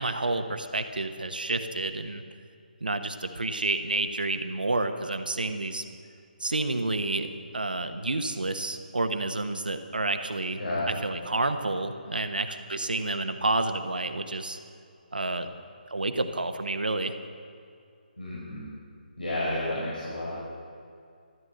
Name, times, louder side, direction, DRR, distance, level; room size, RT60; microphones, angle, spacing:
voice 1, 0.0-2.2 2.8-5.8 6.4-7.3 7.5-10.6 10.9-14.6 15.1-15.5 15.9-17.1, right 2 dB, 65° right, 8 dB, 1.2 m, -29 dB
voice 2, 18.2-18.7 19.2-20.3, left 1 dB, 65° left, -8 dB, 5.3 m, -31 dB
14.0 x 12.5 x 7.8 m, 2.4 s
figure-of-eight pair, 145°, 5 cm